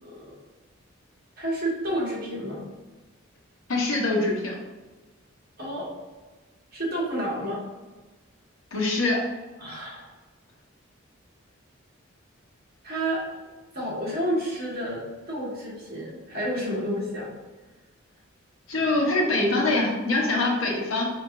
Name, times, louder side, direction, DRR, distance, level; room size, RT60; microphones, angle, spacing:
voice 1, 0.0-0.3 1.4-2.6 5.6-5.9 6.7-7.6 9.6-10.1 12.8-13.2 13.7-17.3 19.6-19.7, right 1 dB, 45° right, -5 dB, 1.5 m, -30 dB
voice 2, 3.7-4.6 8.7-9.2 18.7-21.1, left 2 dB, 75° left, -2 dB, 1.0 m, -24 dB
4.6 x 3.5 x 2.6 m, 1.2 s
head